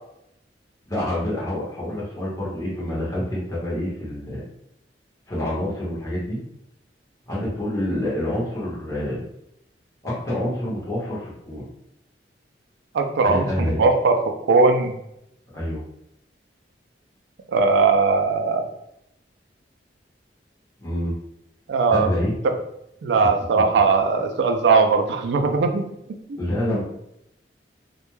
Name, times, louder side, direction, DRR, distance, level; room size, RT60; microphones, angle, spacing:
voice 1, 0.9-4.4 5.3-6.4 7.3-9.2 10.0-11.7 13.2-13.8 15.5-15.8 20.8-21.1 21.9-22.3 26.4-26.8, left 1 dB, 20° left, -8 dB, 0.8 m, -27 dB
voice 2, 12.9-15.0 17.5-18.6 21.7-22.1 22.4-22.6 23.0-26.8, right 4 dB, 75° right, 5 dB, 0.3 m, -20 dB
2.2 x 2.1 x 3.0 m, 0.80 s
head